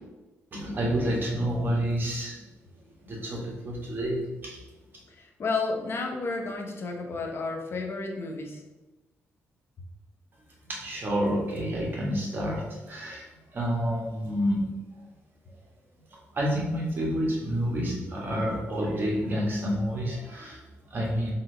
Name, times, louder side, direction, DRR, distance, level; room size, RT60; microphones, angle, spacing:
voice 1, 0.5-2.4 2.7-4.6 10.6-14.7 16.1-21.3, equal, 40° right, -3 dB, 1.3 m, -29 dB
voice 2, 5.1-8.6, left 3 dB, 50° left, 3 dB, 0.7 m, -32 dB
4.2 x 2.5 x 3.9 m, 1.1 s
cardioid pair, 100°, 5 cm